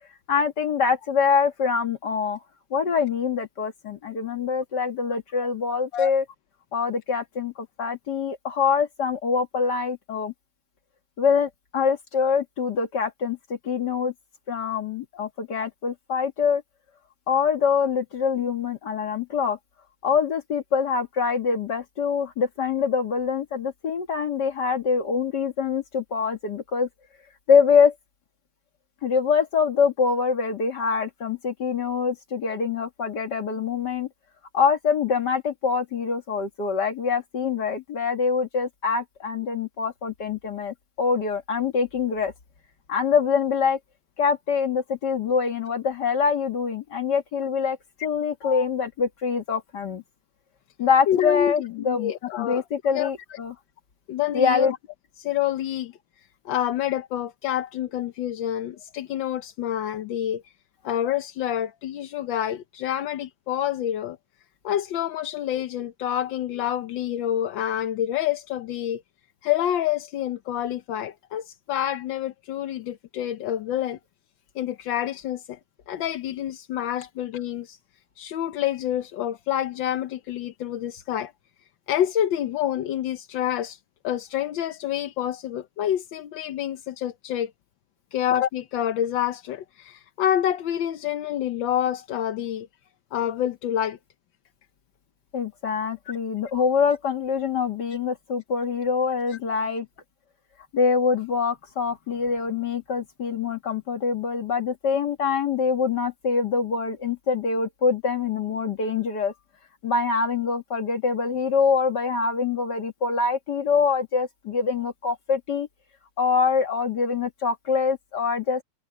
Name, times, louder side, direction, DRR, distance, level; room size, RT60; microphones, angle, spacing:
voice 1, 0.3-2.4 2.7-6.2 6.7-10.3 11.2-14.1 14.5-16.6 17.3-19.6 20.0-26.9 27.5-27.9 29.0-34.1 34.5-42.3 42.9-43.8 44.2-50.0 50.8-52.1 52.4-53.5 54.3-54.7 95.3-99.9 100.7-109.3 109.8-115.7 116.2-118.6, left 5 dB, 65° left, 2.5 m, -24 dB
voice 2, 51.1-52.6 52.9-53.4 54.1-54.8 55.2-55.9 56.4-60.4 60.8-64.2 64.6-69.0 69.4-74.0 74.5-75.6 75.9-77.8 78.2-81.3 81.9-83.8 84.0-87.5 88.1-92.7 93.1-94.0 96.5-96.6 99.3-99.4, left 11 dB, 85° left, 1.6 m, -27 dB
omnidirectional pair, 2.0 m